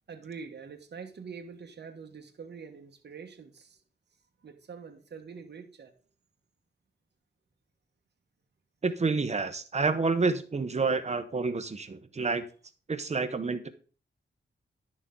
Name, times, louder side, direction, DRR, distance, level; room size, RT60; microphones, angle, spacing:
voice 1, 0.1-3.8 4.4-5.9, right 5 dB, 60° right, 1.2 m, -45 dB
voice 2, 8.8-12.4 12.9-13.7, right 4 dB, 35° right, 0.9 m, -29 dB
10.5 x 6.4 x 3.7 m
wide cardioid pair, 145°, 20 cm